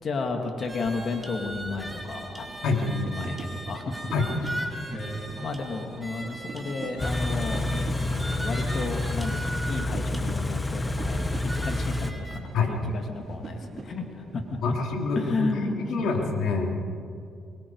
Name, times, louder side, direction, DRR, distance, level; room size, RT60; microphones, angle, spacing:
voice 1, 0.0-2.5 2.7-4.0 4.4-4.5 4.9-14.6 15.2-16.5, left 3 dB, 50° left, 4 dB, 2.4 m, -33 dB
sound 1, 0.6-12.4, right 1 dB, 5° right, 2.9 m, -39 dB
sound 2, 1.1-15.5, right 3 dB, 45° right, 2.9 m, -44 dB
Car / Idling, 7.0-12.1, left 2 dB, 20° left, 1.1 m, -29 dB
voice 2, 14.6-15.5 15.9-16.8, left 4 dB, 75° left, 1 dB, 3.4 m, -26 dB
25.0 x 22.0 x 4.8 m, 2.5 s
cardioid pair, 90°, 0 cm